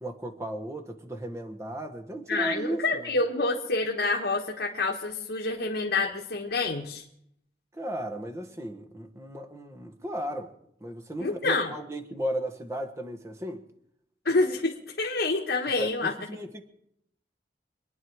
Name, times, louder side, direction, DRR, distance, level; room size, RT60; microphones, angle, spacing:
voice 1, 0.0-3.1 7.7-10.5 10.8-13.6 15.8-16.6, right 1 dB, 15° right, 4 dB, 1.3 m, -35 dB
voice 2, 2.3-7.0 11.2-11.7 14.2-16.1, left 3 dB, 70° left, 0 dB, 1.3 m, -27 dB
25.5 x 10.0 x 4.7 m, 0.75 s
head